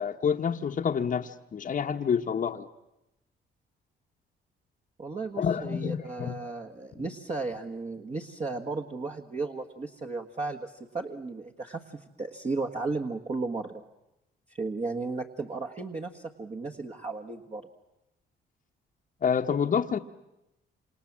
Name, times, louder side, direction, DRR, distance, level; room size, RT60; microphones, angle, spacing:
voice 1, 0.0-2.6 5.4-6.4 19.2-20.0, left 7 dB, 40° left, 4 dB, 1.1 m, -28 dB
voice 2, 5.0-13.8 14.5-17.6, right 3 dB, 35° right, 2 dB, 1.7 m, -35 dB
27.5 x 27.0 x 7.4 m, 0.92 s
cardioid pair, 90°, 20 cm